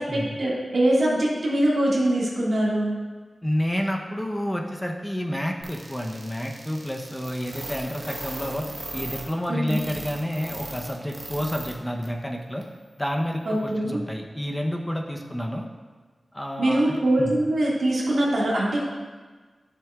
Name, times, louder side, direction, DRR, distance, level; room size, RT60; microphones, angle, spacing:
voice 1, 0.0-2.9 9.5-9.8 13.5-14.0 16.6-18.9, right 1 dB, 75° right, -5 dB, 2.0 m, -23 dB
voice 2, 3.4-8.7 8.9-12.6 13.0-15.7 16.3-17.3, equal, 10° left, 1 dB, 0.8 m, -29 dB
sound 1, 5.6-11.7 12.0-12.1 12.6-12.7, right 2 dB, 55° right, 1.2 m, -37 dB
10.0 x 7.0 x 2.4 m, 1.4 s
cardioid pair, 60°, 0 cm